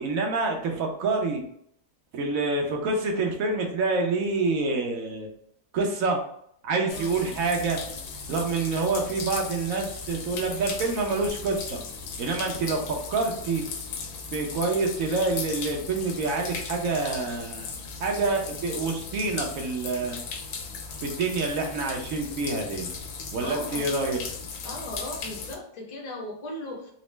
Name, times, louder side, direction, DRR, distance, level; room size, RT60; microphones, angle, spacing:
voice 1, 0.0-1.4 2.1-5.3 5.7-6.2 6.6-7.8 8.3-11.8 12.2-12.8 13.1-13.6 14.3-17.7 18.0-20.2 21.0-22.9 23.3-24.2, right 3 dB, 60° right, 1 dB, 1.1 m, -27 dB
sound 1, 6.9-25.6, left 5 dB, 75° left, 1.1 m, -37 dB
voice 2, 6.9-7.2 23.4-23.9 24.6-26.9, left 1 dB, 45° left, 0 dB, 0.5 m, -37 dB
4.0 x 2.1 x 3.2 m, 0.70 s
omnidirectional pair, 1.7 m